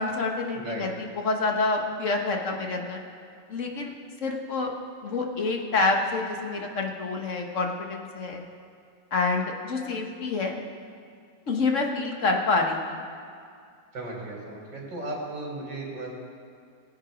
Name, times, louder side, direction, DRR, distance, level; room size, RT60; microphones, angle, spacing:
voice 1, 0.0-3.1 3.5-3.9 4.2-4.7 5.0-8.4 9.1-10.6 11.5-13.0, left 3 dB, 45° left, 2 dB, 1.4 m, -27 dB
voice 2, 0.5-0.9 13.9-16.1, right 2 dB, 70° right, -2 dB, 4.0 m, -35 dB
21.0 x 8.0 x 5.0 m, 2.3 s
omnidirectional pair, 2.1 m